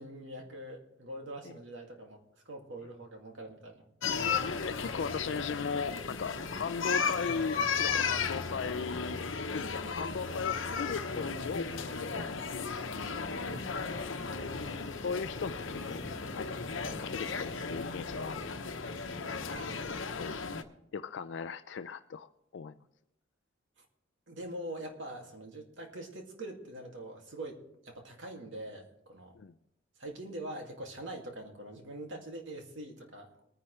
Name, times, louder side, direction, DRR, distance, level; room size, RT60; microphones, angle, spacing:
voice 1, 0.0-2.2 2.5-3.9 14.6-14.7 19.5-20.0 23.8-23.9 24.3-29.4 30.0-33.4, right 1 dB, 75° right, 2 dB, 2.2 m, -44 dB
sound 1, 4.0-20.6, left 5 dB, 90° left, 1.0 m, -35 dB
voice 2, 4.7-11.7 12.0-12.7 13.3-13.5 14.2-14.3 15.0-16.0 16.4-16.6 17.0-18.8 19.8-20.4 20.9-22.7 29.4-29.5, left 5 dB, 70° left, 11 dB, 0.4 m, -38 dB
Motorcycle, 12.9-18.6, left 1 dB, 40° left, 1.3 m, -50 dB
22.5 x 10.0 x 3.2 m, 0.84 s
head